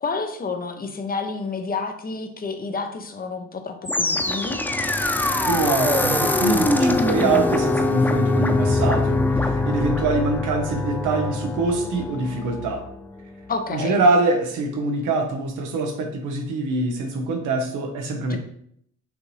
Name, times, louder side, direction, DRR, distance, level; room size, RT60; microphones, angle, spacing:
voice 1, 0.0-4.6 13.5-14.0 18.3-18.4, left 4 dB, 30° left, 6 dB, 0.7 m, -29 dB
sound 1, 3.9-13.0, left 2 dB, 5° left, 0.3 m, -23 dB
voice 2, 5.5-12.8 13.7-18.4, right 3 dB, 85° right, 4 dB, 1.0 m, -24 dB
6.1 x 2.6 x 3.2 m, 0.67 s
cardioid pair, 90°, 30 cm